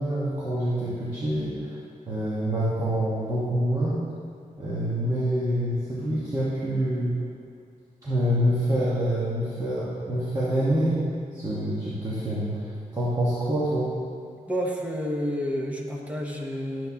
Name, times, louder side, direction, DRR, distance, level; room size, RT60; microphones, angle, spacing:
voice 1, 0.0-1.8 2.1-4.0 4.6-7.1 8.0-11.0 11.3-13.9, equal, 25° right, -9 dB, 1.3 m, -26 dB
voice 2, 14.5-16.9, equal, 10° right, -2 dB, 0.9 m, -29 dB
11.5 x 7.7 x 2.9 m, 2.3 s
wide cardioid pair, 175°, 14 cm